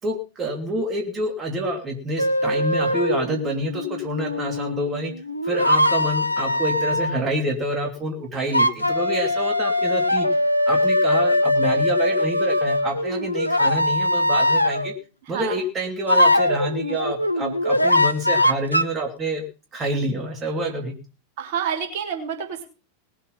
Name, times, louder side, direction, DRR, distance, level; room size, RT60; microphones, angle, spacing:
voice 1, 0.0-5.1 5.4-10.3 10.7-14.9 15.3-19.4 19.7-20.9, right 1 dB, 25° right, 2 dB, 3.0 m, -27 dB
sound 1, 2.2-7.2 8.5-15.0 16.1-18.8, left 1 dB, 90° left, 0.9 m, -21 dB
voice 2, 21.4-22.6, right 7 dB, 50° right, 4 dB, 3.5 m, -28 dB
19.5 x 8.4 x 5.5 m, 0.34 s
figure-of-eight pair, 90°, 0 cm